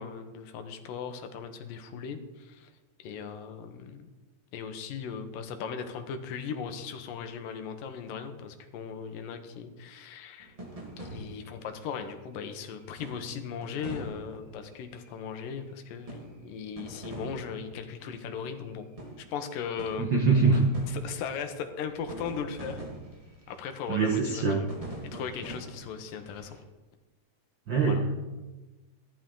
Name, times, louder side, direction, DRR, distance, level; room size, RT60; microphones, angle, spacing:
voice 1, 0.0-2.7 3.0-4.1 4.5-10.6 11.0-18.9 19.2-20.1 20.9-22.9 23.5-24.7 25.1-26.6 27.9-28.0, left 6 dB, 80° left, 7 dB, 2.7 m, -38 dB
sound 1, 10.4-11.9 13.0-15.1 16.1-18.0 18.6-18.7 19.0-19.5 19.8-21.4 21.9-23.6 24.1-26.6, right 1 dB, 20° right, 0.9 m, -44 dB
voice 2, 20.0-20.7 23.9-24.6 27.7-28.2, right 4 dB, 75° right, 2 dB, 1.0 m, -24 dB
15.0 x 12.0 x 3.8 m, 1.1 s
omnidirectional pair, 4.0 m